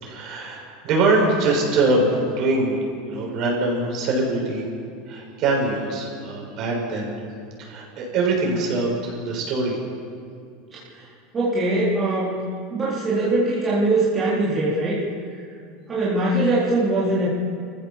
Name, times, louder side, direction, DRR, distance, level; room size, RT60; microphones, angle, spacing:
voice 1, 0.0-2.7 3.1-4.7 5.1-7.1 7.6-9.8, right 2 dB, 45° right, -1 dB, 6.6 m, -23 dB
voice 2, 10.7-11.0 11.3-12.4 12.7-15.0 15.9-17.3, right 2 dB, 20° right, -8 dB, 3.8 m, -22 dB
29.0 x 15.0 x 7.4 m, 2.3 s
supercardioid pair, 145°, 0 cm